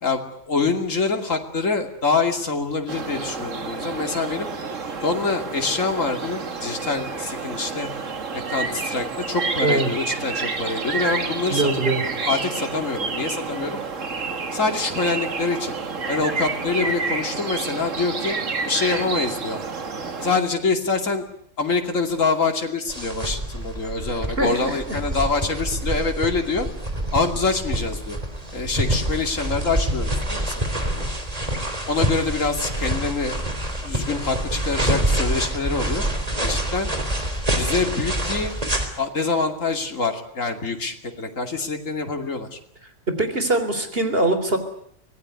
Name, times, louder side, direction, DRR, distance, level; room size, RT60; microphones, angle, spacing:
voice 1, 0.0-4.5 5.0-7.9 8.3-11.7 12.2-13.8 14.5-15.7 16.1-18.4 18.6-19.6 20.2-21.2 21.6-26.7 27.1-28.2 28.5-31.0 31.9-33.4 33.8-36.0 36.4-36.9 37.5-38.5 39.0-42.6, left 4 dB, 80° left, 4 dB, 3.0 m, -25 dB
sound 1, 2.9-20.4, right 4 dB, 75° right, 2.2 m, -29 dB
voice 2, 9.6-9.9 11.5-12.0 24.4-25.0 43.1-44.6, right 2 dB, 45° right, 8 dB, 3.7 m, -22 dB
sound 2, 22.9-38.9, right 1 dB, 30° right, 3.6 m, -26 dB
25.0 x 18.5 x 9.6 m, 0.71 s
omnidirectional pair, 1.3 m